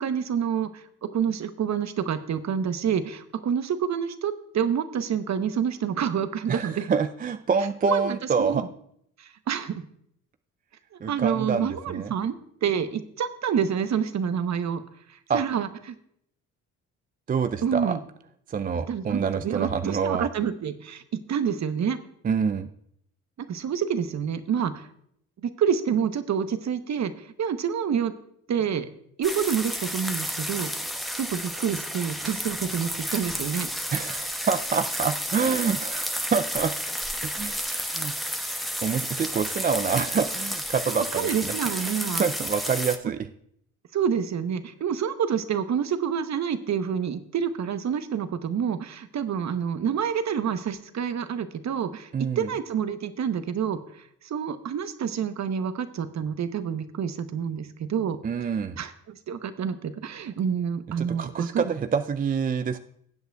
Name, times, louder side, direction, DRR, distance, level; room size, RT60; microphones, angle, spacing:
voice 1, 0.0-6.9 7.8-8.7 9.2-9.8 11.1-12.4 12.6-14.8 15.1-15.9 17.6-18.0 18.9-22.0 23.5-24.9 25.4-27.1 27.4-28.1 28.5-28.9 29.2-30.7 31.2-33.7 40.9-42.3 43.9-52.1 52.4-58.2 58.8-61.7, right 7 dB, 45° right, 11 dB, 0.9 m, -28 dB
voice 2, 6.5-8.6 11.0-12.1 15.3-15.4 17.3-18.0 18.5-20.3 22.2-22.7 33.9-36.7 37.2-38.1 38.8-41.8 42.2-43.3 52.1-52.5 58.2-58.8 61.0-62.8, right 6 dB, 25° right, 10 dB, 0.4 m, -27 dB
sound 1, 29.2-43.0, equal, ahead, 1.0 m, -31 dB
18.5 x 8.0 x 2.3 m, 0.71 s
hypercardioid pair, 55°, 38 cm